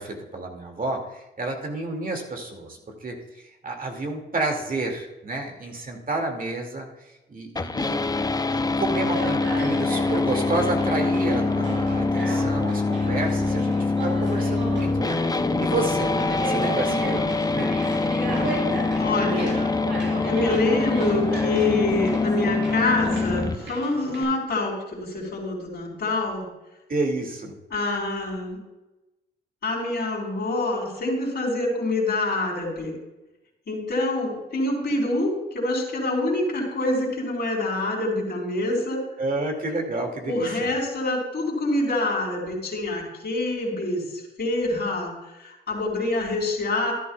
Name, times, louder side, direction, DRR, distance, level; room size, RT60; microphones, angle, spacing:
voice 1, 0.0-6.9 7.3-8.0 8.5-15.2 15.6-16.1 16.4-17.8 26.9-27.6 39.2-40.7, right 2 dB, 45° right, 2 dB, 2.2 m, -30 dB
sound 1, 7.6-23.6, left 3 dB, 20° left, 0.5 m, -24 dB
Conversation, 9.0-24.2, right 2 dB, 70° right, 4.0 m, -34 dB
voice 2, 19.0-19.6 20.2-26.5 27.7-28.6 29.6-32.9 33.7-39.0 40.3-44.0 44.4-45.1 45.4-46.9, left 2 dB, 65° left, -2 dB, 3.9 m, -26 dB
12.5 x 11.0 x 2.3 m, 1.0 s
cardioid pair, 60°, 19 cm